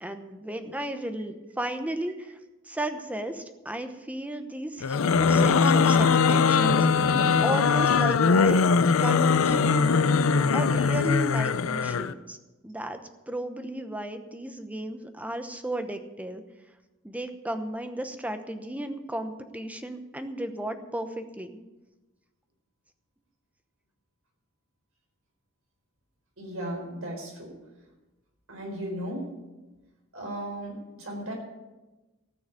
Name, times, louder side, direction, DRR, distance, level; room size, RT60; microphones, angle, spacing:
voice 1, 0.0-2.4 2.6-7.1 7.4-8.6 9.0-9.8 10.5-12.4 12.6-13.0 13.3-16.4 17.0-21.6, right 1 dB, 5° right, 8 dB, 0.9 m, -34 dB
sound 1, 4.8-12.1, left 5 dB, 80° left, 0.5 m, -21 dB
voice 2, 26.4-27.5 28.5-29.3 30.1-31.3, right 1 dB, 75° right, 0 dB, 4.5 m, -35 dB
14.5 x 6.4 x 9.7 m, 1.1 s
head